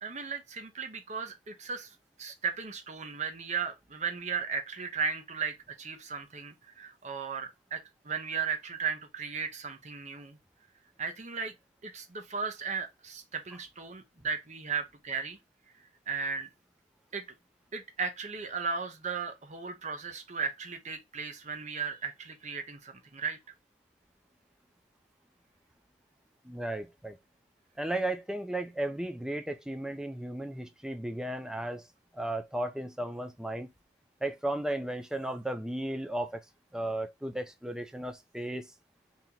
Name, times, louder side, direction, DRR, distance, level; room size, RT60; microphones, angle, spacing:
voice 1, 0.0-10.4 11.0-11.5 11.8-15.4 16.1-16.5 17.1-17.2 17.7-23.4, right 5 dB, 40° right, 0.8 m, -36 dB
voice 2, 26.4-27.2 27.8-31.9 32.1-33.7 34.2-36.4 36.7-38.7, right 1 dB, 5° right, 0.4 m, -35 dB
2.9 x 2.9 x 3.6 m
head